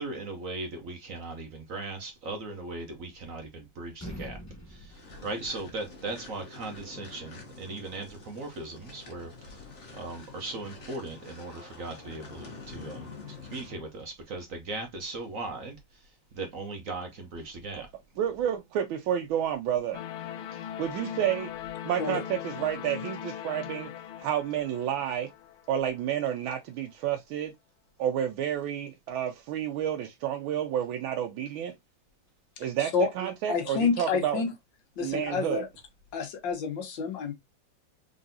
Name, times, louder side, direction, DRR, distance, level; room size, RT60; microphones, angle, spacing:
voice 1, 0.0-4.4 4.7-17.9 20.5-20.7, right 2 dB, 55° right, 1.0 m, -38 dB
sound 1, 3.2-3.6 3.9-6.0, equal, 25° left, 0.4 m, -44 dB
sound 2, 4.9-13.9, left 4 dB, 45° left, 1.2 m, -47 dB
voice 2, 18.2-20.0 20.8-21.5 21.8-23.9 24.2-25.3 25.7-27.5 28.0-31.7 32.6-34.4 35.0-35.7, right 10 dB, 85° right, 1.4 m, -30 dB
sound 3, 19.9-26.0, left 10 dB, 90° left, 1.5 m, -40 dB
voice 3, 32.8-33.1 33.5-34.5 35.0-35.7 36.1-37.3, left 5 dB, 70° left, 1.7 m, -29 dB
3.9 x 3.7 x 2.6 m
omnidirectional pair, 2.2 m